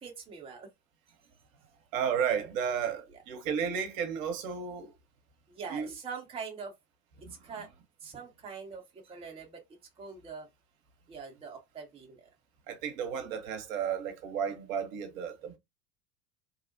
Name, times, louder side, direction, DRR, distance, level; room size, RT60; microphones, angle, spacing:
voice 1, 0.0-0.7 5.5-6.7 7.4-7.7 8.0-9.6 10.0-10.5 11.1-12.3, right 5 dB, 10° right, 0.6 m, -43 dB
voice 2, 1.9-4.9 5.7-5.9 7.2-7.4 12.7-15.5, right 7 dB, 55° right, 0.8 m, -33 dB
2.7 x 2.0 x 2.6 m
figure-of-eight pair, 80°, 49 cm